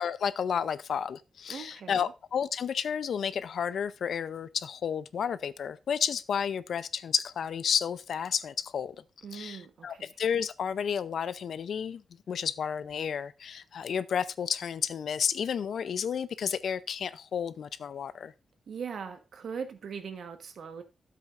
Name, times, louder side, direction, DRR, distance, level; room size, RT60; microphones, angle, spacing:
voice 1, 0.0-9.0 9.3-12.0 12.3-18.3, left 7 dB, 70° left, 0.5 m, -31 dB
voice 2, 1.5-2.1 9.2-10.2 18.7-20.8, right 6 dB, 70° right, 1.2 m, -40 dB
13.0 x 7.7 x 2.5 m
wide cardioid pair, 150°, 0 cm